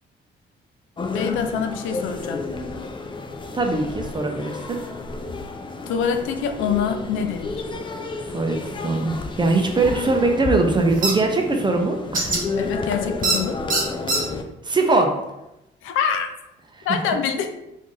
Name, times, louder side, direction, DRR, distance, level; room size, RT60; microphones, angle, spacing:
sound 1, 1.0-14.4, left 3 dB, 25° left, 0.4 m, -31 dB
voice 1, 1.1-2.4 5.9-7.7 12.6-13.6 15.8-16.3 16.8-17.5, left 7 dB, 85° left, 7 dB, 0.4 m, -25 dB
voice 2, 3.5-4.8 8.3-12.3 14.6-15.1 16.7-17.0, right 3 dB, 25° right, 3 dB, 0.6 m, -21 dB
sound 2, 11.0-11.1 12.1-12.4 13.2-13.4 13.7-14.2, right 3 dB, 45° right, 1.1 m, -21 dB
3.0 x 2.7 x 3.7 m, 0.91 s
cardioid pair, 90°, 20 cm